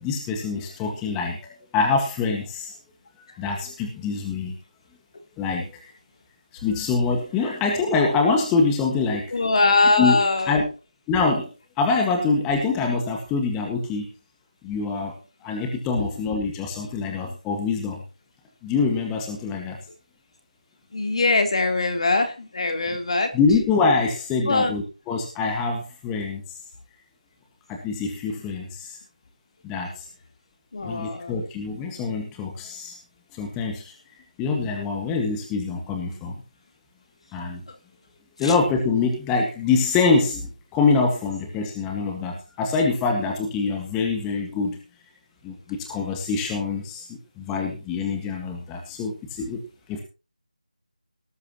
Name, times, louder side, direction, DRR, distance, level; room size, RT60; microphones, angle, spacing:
voice 1, 0.0-2.8 3.4-4.6 5.4-5.9 6.5-9.3 10.0-10.2 10.5-10.6 11.1-11.5 11.8-14.1 14.6-18.0 18.6-19.8 23.3-26.6 27.7-29.0 29.6-30.1 30.8-33.0 33.3-34.0 34.4-36.3 37.3-37.6 38.4-44.8 45.4-49.6 49.9-50.0, left 4 dB, 10° left, 2 dB, 1.8 m, -25 dB
voice 2, 9.3-10.6 16.0-16.1 20.9-23.3 24.5-24.8 30.7-31.3 38.4-38.5, left 3 dB, 45° left, 5 dB, 3.6 m, -22 dB
19.0 x 12.0 x 3.0 m, 0.32 s
figure-of-eight pair, 165°, 4 cm